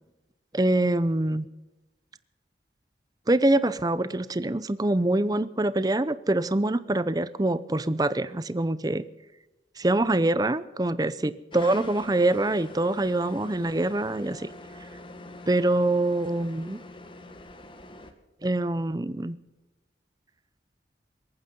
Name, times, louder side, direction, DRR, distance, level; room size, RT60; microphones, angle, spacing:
voice 1, 0.5-1.5 3.3-9.1 9.8-14.5 15.5-16.8 18.4-19.4, right 2 dB, 20° right, 15 dB, 0.6 m, -25 dB
sound 1, 11.5-18.1, left 2 dB, 30° left, 1.5 m, -44 dB
27.5 x 9.4 x 5.3 m, 1.0 s
head